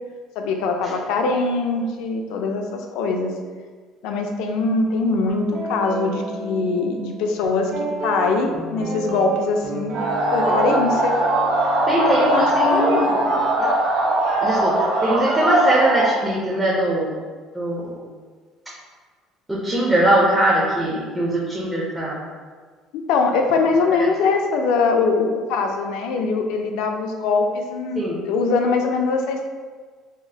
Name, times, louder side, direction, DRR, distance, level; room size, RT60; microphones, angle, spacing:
voice 1, 0.4-3.3 4.0-10.0 10.3-11.2 11.9-13.5 23.1-29.5, left 4 dB, 70° left, 4 dB, 0.4 m, -22 dB
Guitar, 5.3-13.5, right 2 dB, 40° right, 0.7 m, -31 dB
sound 1, 9.9-16.1, right 1 dB, 85° right, 0.7 m, -21 dB
voice 2, 11.9-13.2 13.6-13.7 14.4-14.7 15.0-17.1 17.5-18.0 19.5-22.2 28.0-28.2, right 1 dB, 5° right, -6 dB, 0.4 m, -21 dB
4.8 x 2.0 x 2.7 m, 1.5 s
cardioid pair, 180°, 0 cm